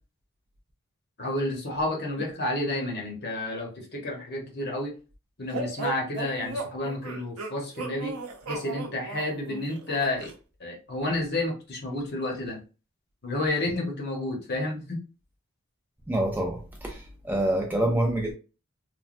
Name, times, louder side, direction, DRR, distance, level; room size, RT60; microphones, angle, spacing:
voice 1, 1.2-4.9 5.4-8.1 8.5-10.3 10.6-12.6 13.2-15.0, left 2 dB, 45° left, 0.9 m, -30 dB
sound 1, 5.5-10.3, right 3 dB, 85° right, 0.6 m, -36 dB
voice 2, 16.1-18.3, right 1 dB, 10° right, 0.3 m, -26 dB
3.1 x 2.3 x 2.5 m
head